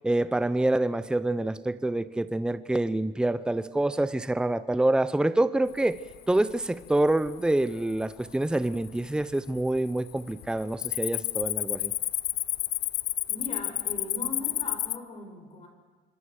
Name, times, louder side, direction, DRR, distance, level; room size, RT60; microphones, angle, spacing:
voice 1, 0.0-6.0 6.3-11.9, right 1 dB, 5° right, 13 dB, 0.7 m, -26 dB
Cricket, 6.0-6.4 6.9-7.3 7.9-8.0 8.6-9.2 9.5-9.8 10.1-15.0, left 15 dB, 70° left, 0.7 m, -30 dB
voice 2, 13.3-15.7, left 2 dB, 40° left, 3 dB, 7.5 m, -39 dB
25.5 x 25.0 x 6.6 m, 1.3 s
cardioid pair, 110°, 17 cm